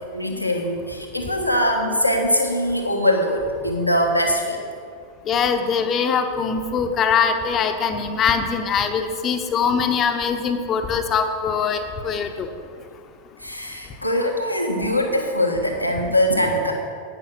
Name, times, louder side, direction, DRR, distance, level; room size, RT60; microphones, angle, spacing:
voice 1, 0.0-4.6 13.4-16.7, equal, 85° left, 2 dB, 1.3 m, -22 dB
voice 2, 5.3-12.5, left 6 dB, 30° left, 6 dB, 1.0 m, -22 dB
11.5 x 9.2 x 6.1 m, 2.2 s
figure-of-eight pair, 90°, 0 cm